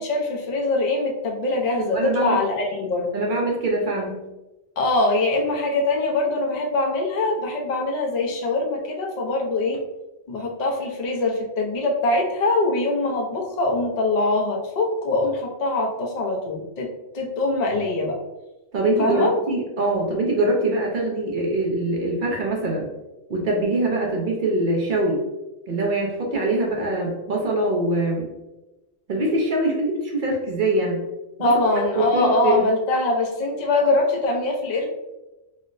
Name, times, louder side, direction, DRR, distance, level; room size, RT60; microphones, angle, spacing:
voice 1, 0.0-3.1 4.8-9.8 10.3-18.2 19.0-19.3 31.4-34.9, left 2 dB, 50° left, -1 dB, 0.5 m, -23 dB
voice 2, 1.9-2.4 3.1-4.2 18.7-22.9 23.3-25.2 25.7-28.3 29.1-31.0 31.4-31.5 31.9-32.6, right 1 dB, 60° right, -1 dB, 0.5 m, -23 dB
4.1 x 2.0 x 2.5 m, 1.0 s
omnidirectional pair, 1.4 m